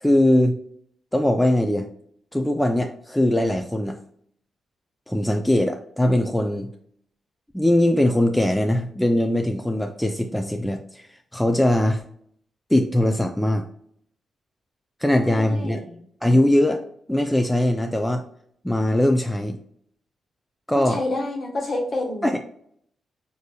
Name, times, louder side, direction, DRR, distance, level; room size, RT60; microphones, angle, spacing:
voice 1, 0.0-0.6 1.1-1.9 2.3-4.0 5.1-6.7 7.5-11.1 11.3-12.0 12.7-13.6 15.0-15.8 16.2-16.8 17.1-18.2 18.6-19.6 20.7-21.0 22.2-22.4, left 1 dB, 5° left, 5 dB, 0.4 m, -21 dB
voice 2, 15.2-16.0 20.7-22.4, left 2 dB, 55° left, 0 dB, 1.2 m, -29 dB
4.8 x 2.7 x 2.2 m, 0.67 s
supercardioid pair, 50°, 0 cm